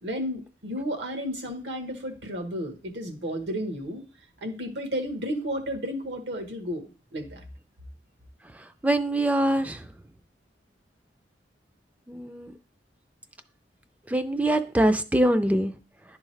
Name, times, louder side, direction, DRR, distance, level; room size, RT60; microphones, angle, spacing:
voice 1, 0.0-4.0 4.4-7.4, equal, 85° right, 5 dB, 1.2 m, -32 dB
voice 2, 8.8-9.8 12.1-12.5 14.1-15.7, right 1 dB, 10° right, 9 dB, 0.3 m, -23 dB
10.5 x 3.6 x 3.2 m, 0.36 s
head